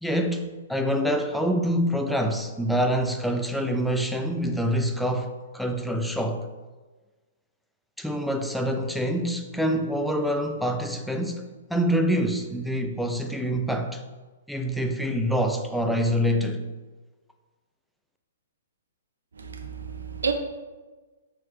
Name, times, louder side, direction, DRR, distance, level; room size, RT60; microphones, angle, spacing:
voice 1, 0.0-6.5 8.0-11.4 11.7-14.0 14.5-16.7, equal, ahead, 0.4 m, -26 dB
voice 2, 19.4-20.3, right 6 dB, 80° right, 0.4 m, -30 dB
4.6 x 3.1 x 3.2 m
hypercardioid pair, 120°, 0 cm